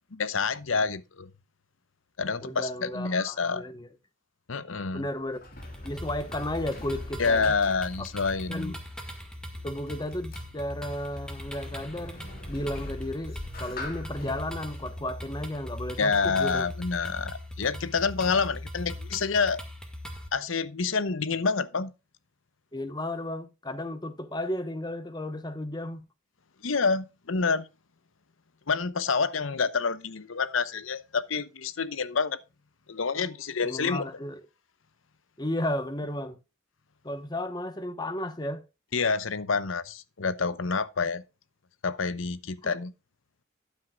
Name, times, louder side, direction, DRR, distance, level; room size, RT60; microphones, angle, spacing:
voice 1, 0.1-1.3 2.2-3.6 4.5-5.1 7.2-8.7 16.0-19.6 20.3-21.9 26.6-27.7 28.7-32.4 32.9-34.1 38.9-41.2 41.8-42.9, left 4 dB, 85° left, 0.8 m, -28 dB
voice 2, 2.4-3.9 4.9-5.4 5.8-7.6 8.5-8.8 9.6-16.7 22.7-26.0 33.6-34.4 35.4-36.4 37.0-38.6 42.6-42.7, left 1 dB, 20° left, 1.1 m, -34 dB
Sliding door, 4.9-16.3, left 2 dB, 45° left, 2.6 m, -45 dB
sound 1, 5.6-20.3, left 1 dB, 5° left, 1.9 m, -40 dB
12.5 x 9.3 x 2.4 m
head